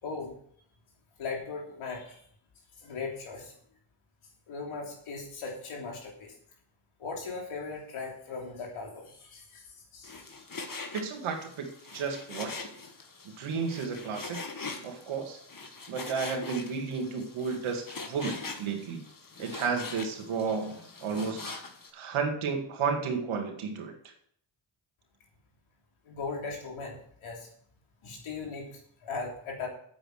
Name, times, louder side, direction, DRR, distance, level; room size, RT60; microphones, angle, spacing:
voice 1, 0.0-0.3 1.2-2.2 2.8-3.5 4.5-6.3 7.0-9.6 9.9-10.1 26.0-27.5 28.0-29.7, left 4 dB, 90° left, -1 dB, 3.3 m, -38 dB
Frying (food), 10.0-21.9, left 3 dB, 45° left, 2.0 m, -43 dB
voice 2, 10.9-11.7 11.9-12.6 13.4-14.4 14.8-15.4 15.9-19.0 19.4-20.8 21.0-21.5 21.9-23.9, right 5 dB, 90° right, 3 dB, 2.2 m, -32 dB
9.0 x 8.7 x 6.6 m, 0.64 s
cardioid pair, 55°, 48 cm